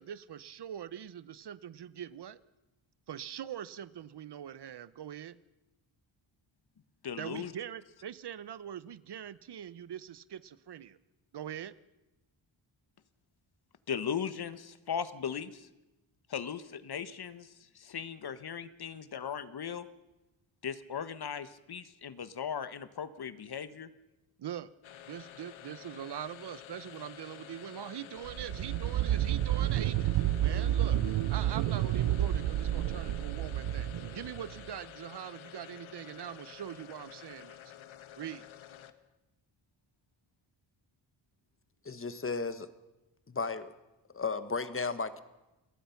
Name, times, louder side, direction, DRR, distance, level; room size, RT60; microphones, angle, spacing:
voice 1, 0.0-2.4 3.1-5.4 7.2-11.0 11.3-11.7 24.4-24.7 25.1-33.9 34.1-37.7 38.2-38.5, right 10 dB, 60° right, 17 dB, 0.8 m, -42 dB
voice 2, 7.0-7.5 13.9-15.6 16.3-17.5 17.8-19.8 20.6-23.9, left 7 dB, 55° left, 13 dB, 1.3 m, -38 dB
sound 1, 24.8-39.2, left 11 dB, 80° left, 1.3 m, -50 dB
sound 2, 28.2-34.7, right 12 dB, 85° right, 0.7 m, -30 dB
voice 3, 41.8-42.7 43.3-43.7 44.1-45.2, left 4 dB, 25° left, 12 dB, 1.3 m, -34 dB
27.0 x 19.0 x 5.8 m, 1.0 s
wide cardioid pair, 105°, 47 cm